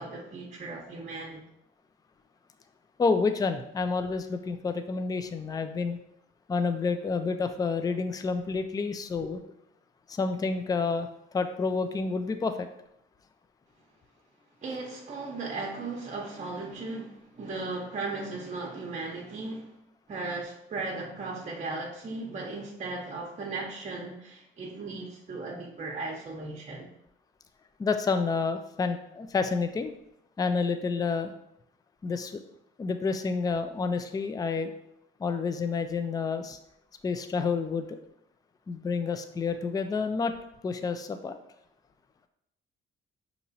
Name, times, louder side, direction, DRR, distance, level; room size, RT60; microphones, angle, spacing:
voice 1, 0.0-1.4 14.6-19.7 20.1-26.9, right 3 dB, 35° right, -2 dB, 0.7 m, -37 dB
voice 2, 3.0-6.0 6.5-9.4 10.1-11.1 11.3-12.7 27.8-29.9 30.4-31.3 32.0-32.4 32.8-34.7 35.2-36.6 37.0-38.0 38.7-40.3 40.6-41.4, left 4 dB, 20° left, 8 dB, 0.3 m, -29 dB
5.2 x 2.9 x 2.7 m, 0.79 s
cardioid pair, 90°, 20 cm